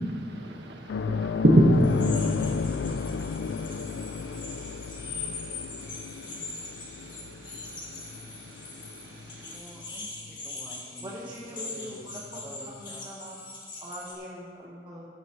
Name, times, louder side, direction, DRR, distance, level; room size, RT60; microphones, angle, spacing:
voice 1, 0.0-9.6, equal, 75° right, 1 dB, 1.5 m, -29 dB
sound 1, 0.9-9.8 10.2-10.3 12.4-12.5, left 5 dB, 75° left, 0.3 m, -33 dB
sound 2, 1.8-14.1, left 3 dB, 25° left, 2.2 m, -41 dB
voice 2, 9.4-13.0, equal, 5° right, -8 dB, 1.2 m, -48 dB
voice 3, 11.0-13.4 13.8-15.1, equal, 25° right, -7 dB, 1.4 m, -42 dB
13.5 x 12.0 x 3.1 m, 2.3 s
head